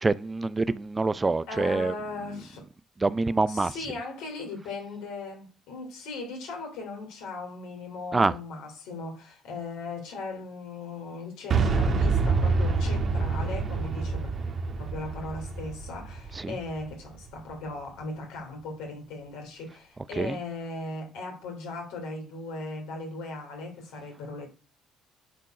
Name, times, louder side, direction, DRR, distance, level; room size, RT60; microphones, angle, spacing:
voice 1, 0.0-1.9 3.0-3.7 8.1-8.3 16.4-16.5 20.2-20.4, right 3 dB, 25° right, 0.4 m, -25 dB
voice 2, 1.5-2.6 3.5-14.3 14.8-24.5, left 3 dB, 70° left, 2.8 m, -38 dB
Boom, 11.5-17.4, right 4 dB, 50° right, 1.5 m, -27 dB
9.2 x 4.5 x 5.2 m
hypercardioid pair, 50°, 0 cm